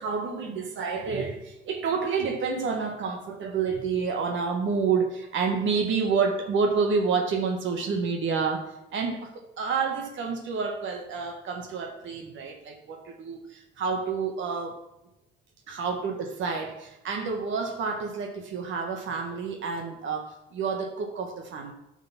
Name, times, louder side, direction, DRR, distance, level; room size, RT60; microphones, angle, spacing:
voice 1, 0.0-14.8 15.7-21.7, right 5 dB, 75° right, 3 dB, 1.5 m, -29 dB
10.5 x 5.2 x 5.8 m, 0.88 s
cardioid pair, 90°, 20 cm